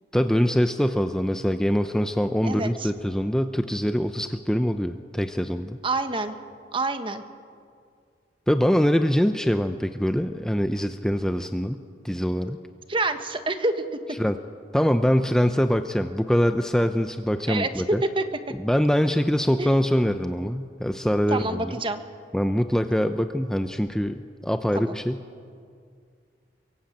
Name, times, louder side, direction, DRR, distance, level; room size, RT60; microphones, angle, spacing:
voice 1, 0.1-5.8 8.5-12.6 14.2-14.4 14.7-18.0 18.6-21.7 22.3-25.2, equal, 5° left, 7 dB, 0.7 m, -23 dB
voice 2, 2.4-2.9 5.8-6.3 6.7-7.2 12.9-13.8 17.5-17.7 18.1-18.2 19.6-19.7 21.3-22.0 24.7-25.0, right 2 dB, 30° right, 8 dB, 1.5 m, -27 dB
24.0 x 23.0 x 8.7 m, 2.2 s
head